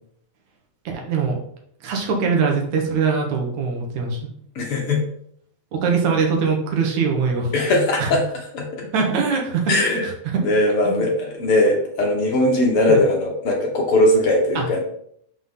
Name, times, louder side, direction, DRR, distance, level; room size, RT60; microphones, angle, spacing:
voice 1, 0.9-1.3 1.8-4.2 5.7-7.5 8.0-8.1 8.9-10.4 10.8-11.1 12.9-13.0 14.6-14.7, right 5 dB, 80° right, 1 dB, 2.6 m, -22 dB
voice 2, 4.6-5.0 7.5-8.2 8.5-8.8 9.7-10.1 10.4-14.8, left 1 dB, 60° left, 1 dB, 1.7 m, -19 dB
6.0 x 5.6 x 3.8 m, 0.67 s
omnidirectional pair, 3.3 m